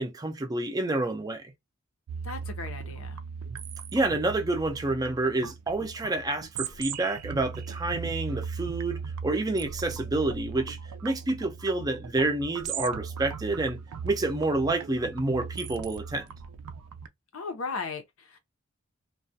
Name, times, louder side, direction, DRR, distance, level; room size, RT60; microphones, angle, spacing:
voice 1, 0.0-1.5 3.9-16.3, right 2 dB, 15° right, 0.4 m, -29 dB
sound 1, 2.1-17.1, right 6 dB, 90° right, 0.4 m, -38 dB
voice 2, 2.2-3.2 17.3-18.4, left 4 dB, 70° left, 0.6 m, -36 dB
2.3 x 2.1 x 2.6 m
head